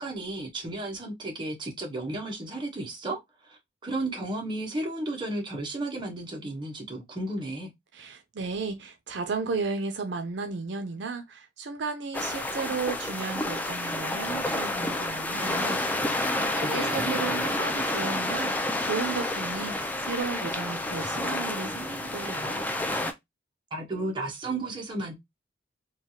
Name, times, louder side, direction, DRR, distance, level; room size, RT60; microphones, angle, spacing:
voice 1, 0.0-3.2 3.4-7.7 16.3-17.2 23.7-25.1, right 2 dB, 25° right, 0.8 m, -33 dB
voice 2, 7.9-16.3 16.7-18.5 18.8-22.6, right 4 dB, 70° right, 0.5 m, -34 dB
sound 1, 12.1-23.1, left 1 dB, 10° left, 0.3 m, -29 dB
3.2 x 2.3 x 2.6 m
head